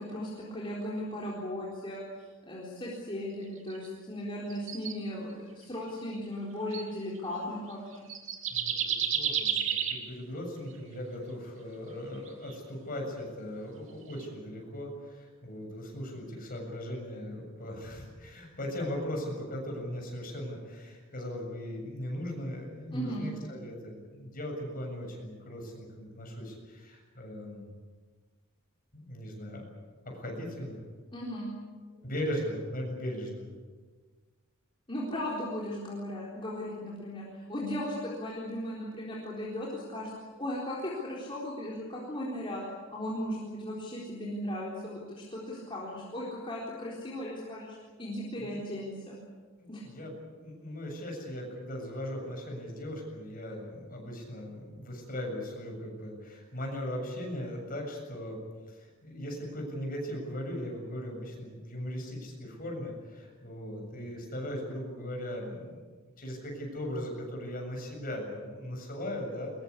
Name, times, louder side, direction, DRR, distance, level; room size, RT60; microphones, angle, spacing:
voice 1, 0.0-8.1 22.9-23.3 31.1-31.6 34.9-40.1 40.4-42.6 42.9-49.2 49.7-49.8, left 1 dB, 25° left, -5 dB, 4.1 m, -37 dB
sound 1, 3.7-3.9 4.5-4.9 5.9-6.1 6.7-6.9 7.7-7.8 8.1-10.0 12.3-12.5 14.0-14.2, right 8 dB, 65° right, 2.8 m, -31 dB
voice 2, 8.5-27.7 28.9-29.7 30.1-30.8 31.9-33.5 48.4-48.6 49.6-58.4 58.7-65.8 66.2-69.5, equal, 40° left, 1 dB, 7.4 m, -38 dB
22.5 x 22.0 x 8.4 m, 1.4 s
head